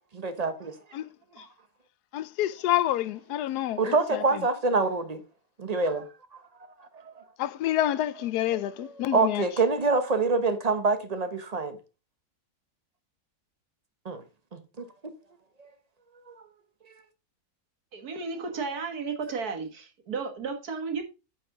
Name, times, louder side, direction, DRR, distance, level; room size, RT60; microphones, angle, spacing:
voice 1, 0.1-0.7 1.4-1.5 3.8-5.2 5.6-6.1 7.0-7.2 8.5-11.8 14.0-14.2 14.5-14.8 15.6-15.7 16.3-16.4, right 3 dB, 30° right, 1.0 m, -26 dB
voice 2, 2.1-3.8 4.1-4.2 7.4-9.4, left 13 dB, 85° left, 1.2 m, -27 dB
voice 3, 17.9-21.0, right 4 dB, 75° right, 2.0 m, -33 dB
9.4 x 6.0 x 3.7 m
omnidirectional pair, 1.6 m